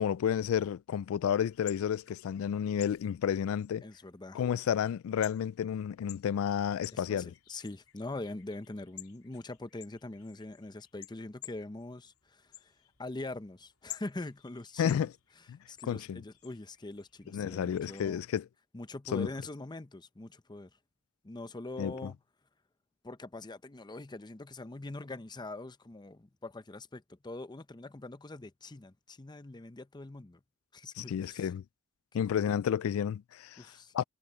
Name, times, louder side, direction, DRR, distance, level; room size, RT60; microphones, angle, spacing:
voice 1, 0.0-3.8 4.3-7.3 14.8-15.1 15.5-15.6 15.9-16.2 17.3-18.4 19.1-19.3 21.8-22.1 31.0-31.6 32.1-33.7 33.9-34.0, left 8 dB, 65° left, 0.3 m, -31 dB
sound 1, 1.4-18.1, left 14 dB, 85° left, 3.5 m, -53 dB
voice 2, 3.8-4.6 6.9-12.7 13.0-15.1 15.7-18.2 18.7-20.7 21.2-22.2 23.0-30.4 30.7-31.5 32.1-32.4 33.6-33.9, left 2 dB, 20° left, 0.6 m, -43 dB
head